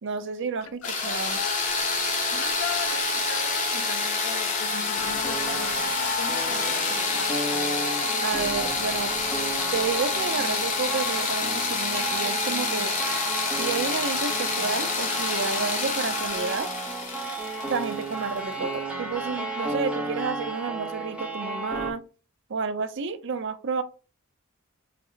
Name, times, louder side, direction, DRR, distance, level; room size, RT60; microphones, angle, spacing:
voice 1, 0.0-1.4 8.2-9.1 9.7-12.9 13.5-16.7 17.7-22.0 22.5-23.8, right 5 dB, 60° right, 0.5 m, -30 dB
sound 1, 0.8-18.6, left 4 dB, 35° left, 0.8 m, -28 dB
voice 2, 2.3-7.4, left 7 dB, 75° left, 0.5 m, -38 dB
sound 2, 4.9-21.9, right 3 dB, 5° right, 0.6 m, -34 dB
4.3 x 2.1 x 3.8 m
head